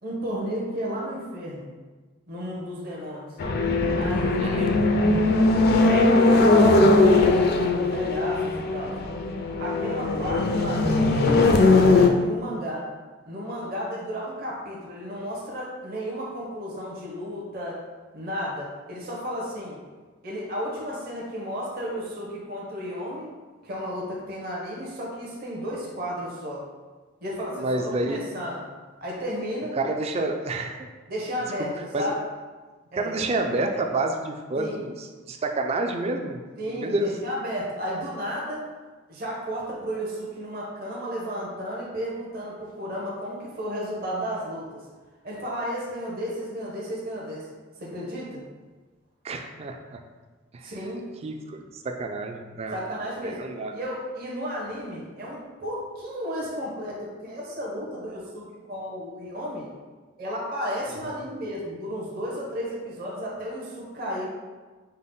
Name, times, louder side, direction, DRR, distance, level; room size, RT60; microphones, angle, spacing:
voice 1, 0.0-1.7 2.3-3.3 3.9-4.7 5.8-9.0 9.6-12.8 13.3-17.8 18.1-19.8 20.2-23.3 23.6-26.6 27.2-28.7 29.0-29.8 31.1-32.2 32.9-33.1 34.5-34.8 36.6-38.6 39.1-44.8 45.2-47.5 47.8-48.4 50.6-51.0 52.7-53.4 53.7-59.7 60.2-64.3, equal, 45° right, -4 dB, 0.9 m, -33 dB
sound 1, 3.4-12.1, left 2 dB, 50° left, 0.4 m, -20 dB
voice 2, 4.4-4.8 27.6-28.2 29.8-30.8 31.9-32.2 32.9-35.0 35.3-36.4 36.7-37.1 49.2-50.0 50.5-50.7 51.2-52.8 53.2-53.7, right 2 dB, 30° right, 4 dB, 0.3 m, -29 dB
5.4 x 2.1 x 3.8 m, 1.3 s
head